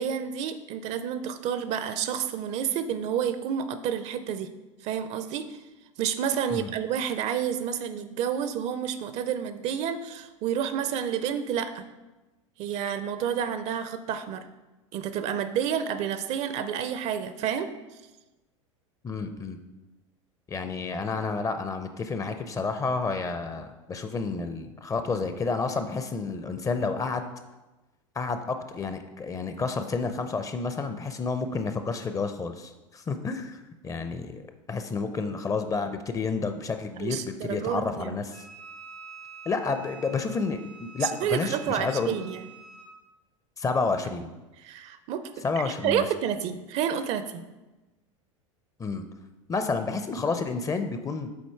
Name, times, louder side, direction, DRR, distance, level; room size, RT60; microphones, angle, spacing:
voice 1, 0.0-4.5 4.8-5.6 6.0-11.8 12.6-14.4 14.9-17.7 37.0-38.2 41.0-42.5 44.6-47.4, right 8 dB, 40° right, 11 dB, 0.5 m, -30 dB
voice 2, 19.0-19.6 20.5-27.3 28.2-38.4 39.5-42.2 43.6-44.3 45.4-46.1 48.8-49.0 49.5-51.3, left 4 dB, 20° left, 8 dB, 0.6 m, -30 dB
Wind instrument woodwind instrument, 38.3-42.9, right 6 dB, 70° left, 2.5 m, -47 dB
7.1 x 4.3 x 4.6 m, 1.1 s
figure-of-eight pair, 85°, 17 cm